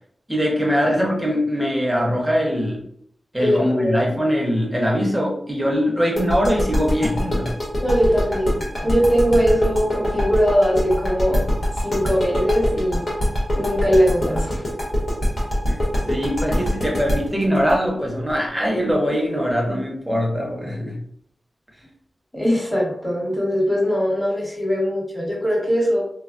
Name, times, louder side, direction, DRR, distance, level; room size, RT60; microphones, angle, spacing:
voice 1, 0.3-2.8 3.3-7.6 15.7-15.8 16.1-21.0, equal, 10° right, -2 dB, 0.8 m, -22 dB
voice 2, 3.4-4.0 7.8-13.1 13.5-14.6 22.3-26.0, equal, 15° left, -4 dB, 1.2 m, -21 dB
sound 1, 6.2-18.9, equal, 55° left, 1.0 m, -23 dB
3.2 x 2.2 x 2.5 m, 0.68 s
wide cardioid pair, 110°, 0 cm